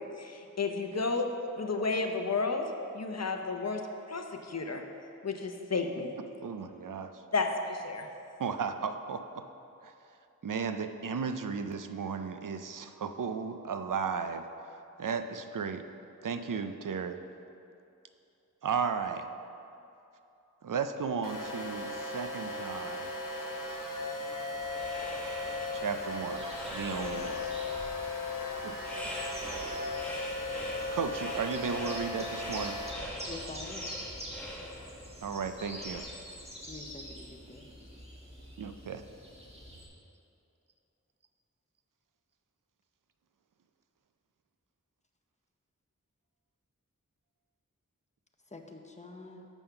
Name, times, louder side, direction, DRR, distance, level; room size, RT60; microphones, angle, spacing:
voice 1, 0.2-2.7 2.9-3.8 4.1-4.8 5.2-6.1 7.3-8.0, left 3 dB, 55° left, 4 dB, 0.7 m, -32 dB
voice 2, 6.4-7.2 8.4-9.4 9.8-10.2 10.4-15.8 16.2-17.2 18.6-19.3 20.6-23.1 25.7-26.5 26.7-27.5 28.6-28.8 29.0-29.1 30.9-32.8 35.2-36.1 38.6-39.1 49.4-49.5, right 6 dB, 80° right, 9 dB, 0.5 m, -35 dB
sound 1, 21.2-32.9, left 2 dB, 75° left, 1.3 m, -37 dB
sound 2, 24.5-36.0, equal, 5° left, 1.6 m, -44 dB
sound 3, 26.3-39.9, equal, 20° right, 1.4 m, -46 dB
voice 3, 33.3-33.9 36.7-37.6 48.5-49.5, left 3 dB, 20° left, 3 dB, 0.7 m, -46 dB
7.0 x 5.6 x 5.8 m, 2.7 s
wide cardioid pair, 50°, 32 cm